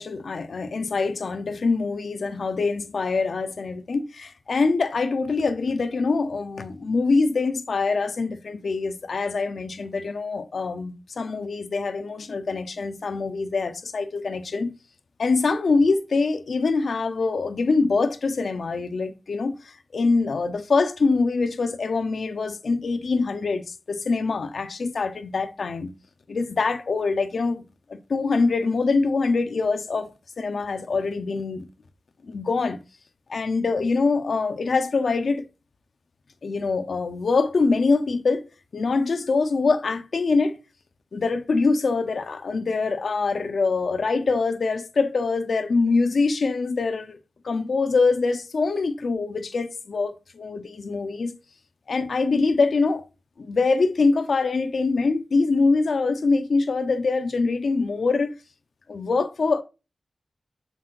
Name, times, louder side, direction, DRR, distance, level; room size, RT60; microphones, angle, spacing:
voice 1, 0.0-14.7 15.2-19.5 19.9-25.9 26.3-27.6 27.9-30.1 30.4-31.7 32.3-32.8 33.3-35.4 36.4-38.5 38.7-40.6 41.1-47.2 47.4-51.3 51.9-53.0 53.4-58.3 58.9-59.6, left 4 dB, 75° left, 0.7 m, -24 dB
7.5 x 6.2 x 2.6 m
wide cardioid pair, 100°, 0 cm